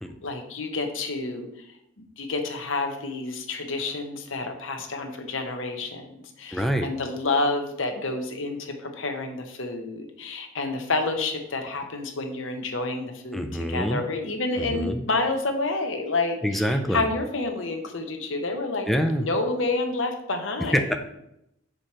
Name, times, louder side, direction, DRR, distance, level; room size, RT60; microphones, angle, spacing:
voice 1, 0.2-1.5 2.2-18.9 19.2-20.9, left 3 dB, 80° left, 5 dB, 1.0 m, -29 dB
voice 2, 6.5-6.9 13.3-14.0 14.6-15.0 16.4-17.1 18.9-19.3 20.7-21.0, equal, ahead, 5 dB, 0.4 m, -25 dB
5.0 x 4.3 x 6.0 m, 0.80 s
head